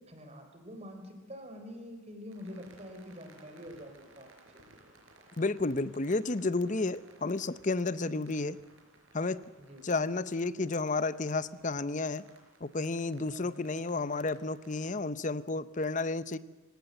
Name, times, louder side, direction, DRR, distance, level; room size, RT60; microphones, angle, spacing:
voice 1, 0.0-4.8 7.9-8.3 9.6-9.9 13.2-13.6, equal, 30° right, 5 dB, 3.7 m, -47 dB
sound 1, 2.3-14.9, right 2 dB, 75° right, 4.9 m, -60 dB
voice 2, 5.4-8.6 9.1-9.4 9.8-12.2 12.6-16.4, left 3 dB, 35° left, 15 dB, 0.7 m, -31 dB
27.0 x 17.5 x 7.8 m, 1.2 s
head